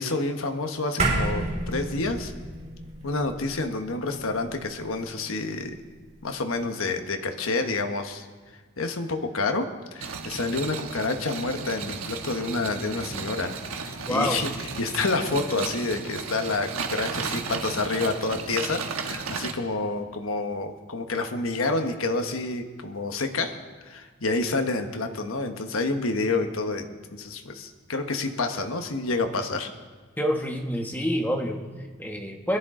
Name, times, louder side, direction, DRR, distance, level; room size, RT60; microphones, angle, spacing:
voice 1, 0.0-2.3 3.0-5.8 6.2-8.3 8.8-13.6 13.8-14.5 14.8-23.6 23.8-29.7, left 3 dB, 75° left, 6 dB, 1.2 m, -28 dB
sound 1, 1.0-5.6, right 2 dB, 30° right, 2.0 m, -31 dB
sound 2, 10.0-19.5, right 5 dB, 80° right, 1.3 m, -34 dB
voice 2, 14.0-14.4 30.2-32.6, equal, 10° left, 2 dB, 1.3 m, -27 dB
21.5 x 12.0 x 3.8 m, 1.4 s
head